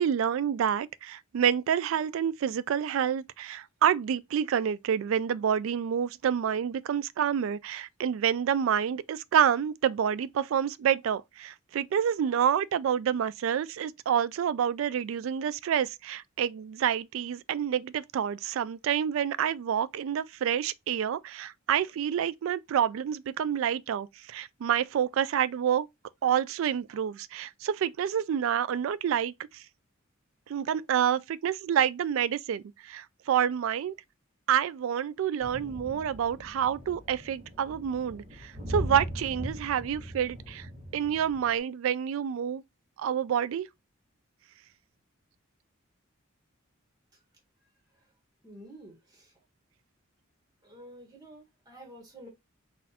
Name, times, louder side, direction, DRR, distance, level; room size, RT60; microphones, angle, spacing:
voice 1, 0.0-25.9 26.2-29.6 30.5-33.9 34.5-40.7 40.9-42.6 43.0-43.7, right 8 dB, 75° right, 0.3 m, -28 dB
sound 1, 35.4-41.6, equal, 35° right, 1.0 m, -39 dB
voice 2, 48.4-49.3 50.6-52.3, right 1 dB, 20° right, 1.3 m, -49 dB
4.1 x 2.5 x 4.1 m
head